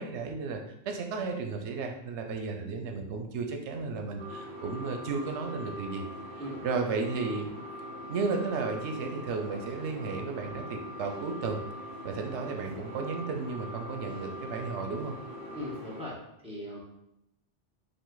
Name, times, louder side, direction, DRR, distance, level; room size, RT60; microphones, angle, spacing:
voice 1, 0.0-6.1 6.6-7.5 8.1-11.6 12.0-15.2, right 4 dB, 90° right, 4 dB, 0.9 m, -34 dB
sound 1, 4.2-16.1, equal, 35° right, 2.0 m, -42 dB
voice 2, 15.5-16.8, left 1 dB, 5° right, -6 dB, 1.3 m, -39 dB
5.3 x 2.5 x 3.8 m, 0.83 s
omnidirectional pair, 1.1 m